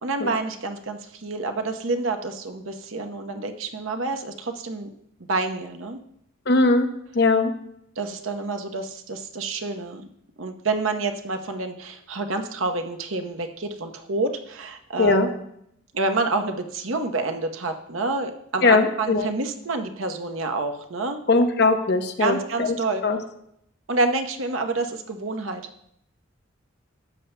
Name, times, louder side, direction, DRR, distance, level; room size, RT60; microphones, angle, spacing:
voice 1, 0.0-4.9 5.3-6.0 8.0-10.0 10.4-15.4 15.9-21.2 22.2-23.0 23.9-25.6, right 3 dB, 75° right, 6 dB, 0.9 m, -28 dB
voice 2, 6.5-6.9 7.1-7.5 15.0-15.3 18.6-19.3 21.3-22.7 23.0-23.2, left 3 dB, 55° left, 6 dB, 0.8 m, -19 dB
12.5 x 8.1 x 2.2 m, 0.74 s
head